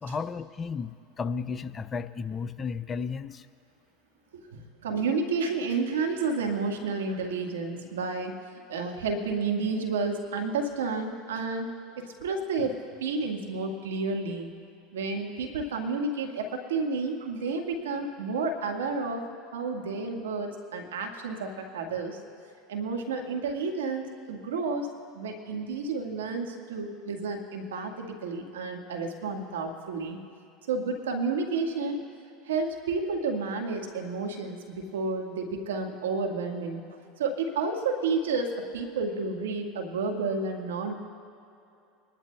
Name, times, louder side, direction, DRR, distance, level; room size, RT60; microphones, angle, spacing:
voice 1, 0.0-3.5, left 5 dB, 25° left, 11 dB, 0.5 m, -33 dB
voice 2, 4.3-11.7 12.0-12.7 13.0-14.5 14.9-19.2 19.5-22.2 22.7-24.9 25.1-30.2 30.7-32.0 32.4-36.8 37.2-40.9, right 4 dB, 90° right, 3 dB, 1.5 m, -31 dB
25.5 x 12.0 x 2.3 m, 2.7 s
hypercardioid pair, 95°, 0 cm